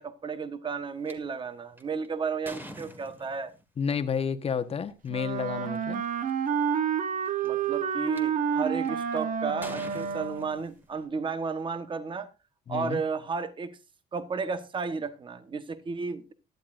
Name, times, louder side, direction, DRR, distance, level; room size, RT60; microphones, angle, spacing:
voice 1, 0.0-3.5 7.4-12.3 12.7-13.8 14.1-16.3, right 5 dB, 30° right, 1.3 m, -33 dB
sound 1, 1.1-1.2 1.8-3.6 4.9-5.1 5.7-5.8 6.0-6.5 7.2-8.2 8.8-9.1 9.6-11.0, equal, 10° right, 1.9 m, -45 dB
voice 2, 3.8-6.0 12.7-13.0, left 6 dB, 35° left, 1.3 m, -30 dB
Wind instrument woodwind instrument, 5.1-10.6, right 7 dB, 50° right, 1.2 m, -29 dB
17.5 x 12.0 x 2.6 m
cardioid pair, 110°, 17 cm